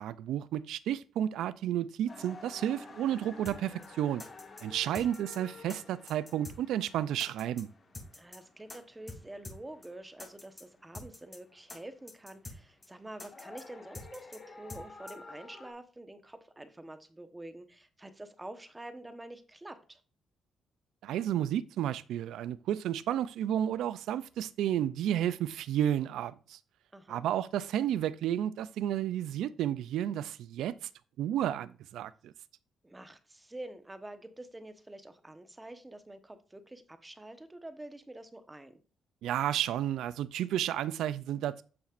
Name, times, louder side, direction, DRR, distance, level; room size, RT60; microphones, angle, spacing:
voice 1, 0.0-4.2 4.6-7.7 21.0-26.6 27.1-30.9 31.2-32.3 39.2-41.6, right 11 dB, 80° right, 0.3 m, -32 dB
sound 1, 2.1-15.7, left 3 dB, 35° left, 1.7 m, -52 dB
sound 2, 3.5-3.6 3.8-3.9 4.2-4.6 4.9-5.4 5.7-5.8 6.1-6.6 6.8-6.9 7.2-7.6 7.9-8.4 8.7-8.8 9.1-9.2 9.4-9.6 9.8-9.9 10.2-10.6 10.9-11.4 11.7-11.8 12.1-12.6 12.8-12.9 13.2-13.6 13.9-14.4 14.7-14.8 15.1-15.2, left 2 dB, 20° left, 2.8 m, -45 dB
voice 2, 8.1-20.0 26.9-27.2 32.8-38.8, right 1 dB, 15° right, 1.1 m, -47 dB
8.6 x 7.2 x 2.5 m
cardioid pair, 90°, 0 cm